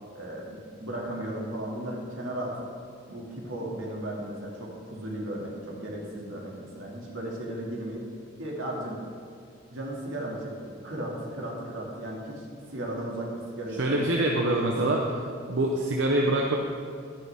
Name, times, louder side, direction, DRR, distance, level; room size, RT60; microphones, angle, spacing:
voice 1, 0.1-2.7 3.1-8.1 8.4-9.0 9.7-14.1 14.5-14.9, right 1 dB, 85° right, -3 dB, 2.3 m, -35 dB
voice 2, 13.8-15.0 15.5-16.6, right 1 dB, 65° right, 0 dB, 0.8 m, -24 dB
12.0 x 10.5 x 3.5 m, 2.3 s
head